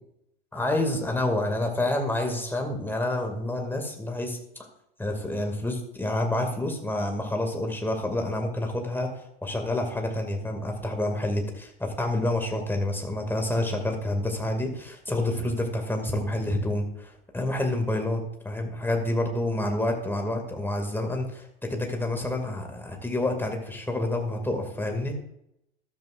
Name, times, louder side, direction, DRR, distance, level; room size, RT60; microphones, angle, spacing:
voice 1, 0.5-4.4 5.0-25.1, left 1 dB, 5° left, 3 dB, 2.4 m, -28 dB
14.0 x 12.0 x 2.6 m, 0.81 s
figure-of-eight pair, 75°, 31 cm